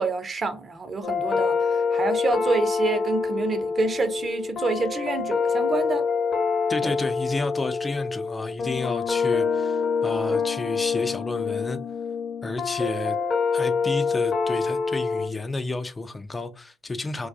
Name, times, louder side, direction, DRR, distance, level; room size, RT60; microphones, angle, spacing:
voice 1, 0.0-6.0 6.8-6.9, right 3 dB, 40° right, 0.6 m, -27 dB
sound 1, 1.0-15.3, left 5 dB, 45° left, 0.7 m, -26 dB
voice 2, 6.7-11.8 12.4-13.2 13.5-17.3, left 2 dB, 25° left, 0.3 m, -31 dB
2.3 x 2.2 x 2.5 m
hypercardioid pair, 55°, 0 cm